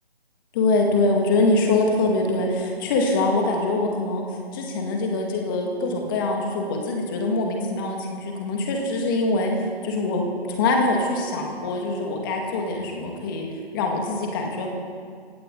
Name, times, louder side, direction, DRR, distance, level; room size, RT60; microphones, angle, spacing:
voice 1, 0.5-9.5 9.8-13.5 13.7-14.7, left 2 dB, 20° left, 1 dB, 2.2 m, -24 dB
19.0 x 17.0 x 4.0 m, 2.1 s
figure-of-eight pair, 150°, 32 cm